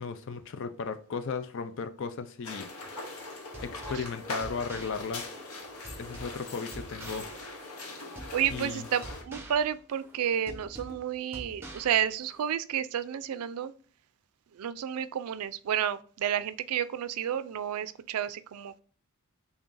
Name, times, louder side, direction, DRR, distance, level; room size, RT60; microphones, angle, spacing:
voice 1, 0.0-2.7 3.6-5.3 6.0-7.3 8.5-8.9, left 5 dB, 55° left, 0.4 m, -35 dB
sound 1, 2.4-9.2, left 2 dB, 80° left, 0.9 m, -41 dB
sound 2, 3.5-12.5, right 1 dB, 10° right, 0.7 m, -46 dB
voice 2, 8.3-13.7 14.5-18.8, right 9 dB, 80° right, 0.3 m, -31 dB
3.8 x 3.5 x 2.5 m
head